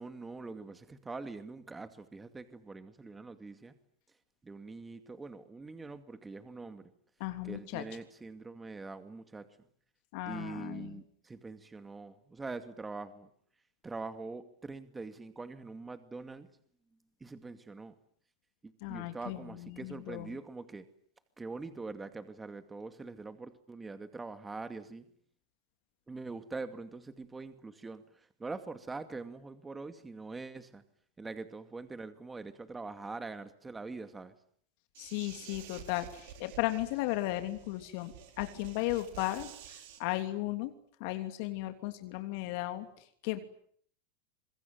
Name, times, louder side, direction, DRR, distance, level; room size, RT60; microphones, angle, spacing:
voice 1, 0.0-3.7 4.4-6.9 7.4-9.5 10.3-13.3 13.8-16.5 17.2-17.9 18.6-20.9 21.4-25.1 26.1-30.8 31.2-34.3, right 3 dB, 15° right, 10 dB, 2.3 m, -43 dB
voice 2, 7.2-7.8 10.1-11.0 18.8-20.3 35.0-40.7 41.0-42.9 43.2-43.4, left 17 dB, 60° left, 8 dB, 3.1 m, -35 dB
sound 1, 34.9-40.0, right 9 dB, 65° right, 6.1 m, -51 dB
26.5 x 22.5 x 9.4 m, 0.62 s
hypercardioid pair, 110°, 0 cm